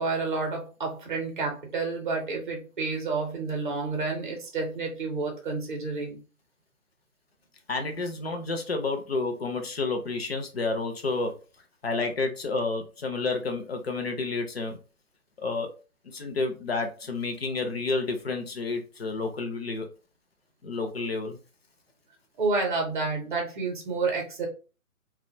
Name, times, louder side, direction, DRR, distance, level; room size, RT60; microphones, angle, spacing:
voice 1, 0.0-6.2 22.4-24.5, right 3 dB, 35° right, 0.6 m, -30 dB
voice 2, 7.7-11.3 11.8-14.8 15.4-15.7 16.1-19.9 20.6-21.4, left 3 dB, 45° left, 0.5 m, -30 dB
2.4 x 2.1 x 2.5 m
hypercardioid pair, 160°, 43 cm